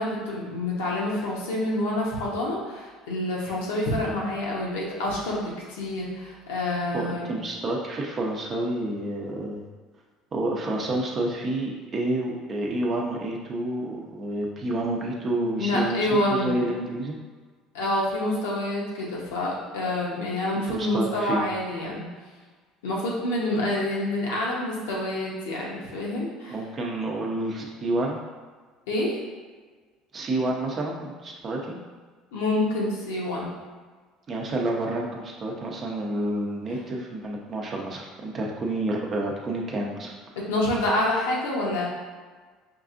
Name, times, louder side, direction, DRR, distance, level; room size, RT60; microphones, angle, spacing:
voice 1, 0.0-7.3 15.6-16.6 17.7-22.0 22.8-26.6 28.9-29.2 32.3-33.5 40.5-41.9, left 1 dB, 80° left, -4 dB, 0.9 m, -27 dB
voice 2, 6.9-9.7 10.3-17.2 20.5-21.4 26.5-28.2 30.1-31.8 34.3-40.1, right 1 dB, 40° right, -1 dB, 0.7 m, -29 dB
4.6 x 2.5 x 2.5 m, 1.5 s
hypercardioid pair, 70°, 0 cm